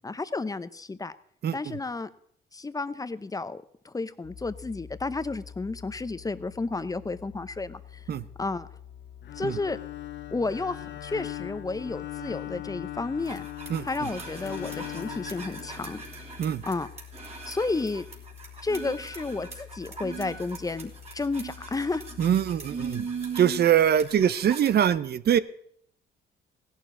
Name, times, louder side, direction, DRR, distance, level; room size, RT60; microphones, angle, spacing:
voice 1, 0.0-1.1 1.5-2.1 2.5-8.0 8.4-8.7 9.4-9.8 10.3-13.4 13.8-16.0 16.6-16.9 17.5-18.0 18.6-22.0, left 3 dB, 20° left, 14 dB, 0.7 m, -32 dB
voice 2, 1.4-1.8 8.1-8.2 9.4-9.6 13.7-14.1 16.4-16.6 22.2-23.1 23.4-25.4, right 9 dB, 55° right, 16 dB, 0.7 m, -23 dB
sound 1, 4.2-24.2, left 8 dB, 80° left, 3.0 m, -48 dB
Bowed string instrument, 9.2-16.4, left 13 dB, 65° left, 0.9 m, -40 dB
sound 2, 13.3-24.9, right 5 dB, 30° right, 3.2 m, -39 dB
16.5 x 11.5 x 3.8 m, 0.66 s
cardioid pair, 90°, 20 cm